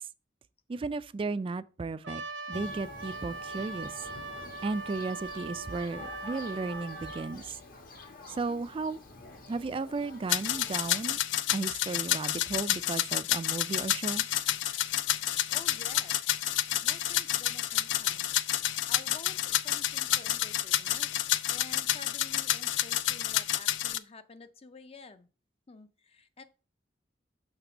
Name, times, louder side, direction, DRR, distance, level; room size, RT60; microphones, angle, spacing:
voice 1, 0.7-4.0 4.6-7.6 8.3-9.0 9.5-11.2 11.5-14.2, right 3 dB, 30° right, 0.3 m, -35 dB
Trumpet, 2.0-7.4, right 3 dB, 80° right, 0.8 m, -41 dB
Thunder, 2.5-11.1, left 3 dB, 55° left, 1.2 m, -48 dB
sound 1, 10.3-24.0, left 13 dB, 80° left, 0.4 m, -29 dB
voice 2, 15.5-16.2 16.8-18.3 18.9-21.2 21.5-25.3 25.7-26.4, left 3 dB, 35° left, 0.6 m, -50 dB
6.6 x 3.3 x 6.0 m
head